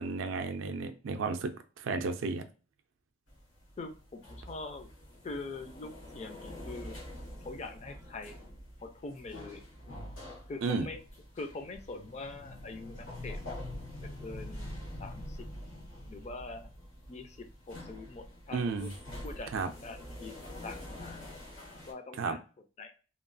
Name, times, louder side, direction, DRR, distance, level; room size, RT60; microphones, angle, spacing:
voice 1, 0.0-2.4 10.6-10.9 18.5-18.9 19.5-19.7 22.2-22.4, right 4 dB, 65° right, 7 dB, 0.4 m, -33 dB
sound 1, 3.3-21.9, left 1 dB, 90° left, 1.3 m, -45 dB
voice 2, 3.8-4.9 5.2-7.0 7.4-8.4 8.8-9.6 10.5-11.0 11.3-13.6 14.2-15.4 16.1-16.7 17.1-18.9 19.2-19.5 19.8-21.3 21.9-22.4 22.8-22.9, left 3 dB, 30° left, 7 dB, 0.4 m, -43 dB
2.9 x 2.3 x 2.5 m, 0.36 s
head